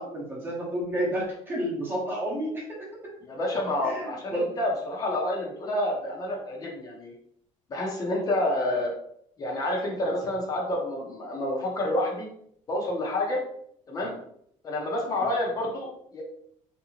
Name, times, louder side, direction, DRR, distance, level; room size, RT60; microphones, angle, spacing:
voice 1, 0.0-2.9 3.8-4.5, right 1 dB, 15° right, -4 dB, 0.9 m, -30 dB
voice 2, 3.2-7.1 7.7-8.9 9.4-12.3 12.7-13.4 13.9-14.1 14.6-16.2, left 1 dB, 25° left, -2 dB, 0.7 m, -29 dB
3.4 x 2.8 x 2.8 m, 0.68 s
cardioid pair, 165°, 13 cm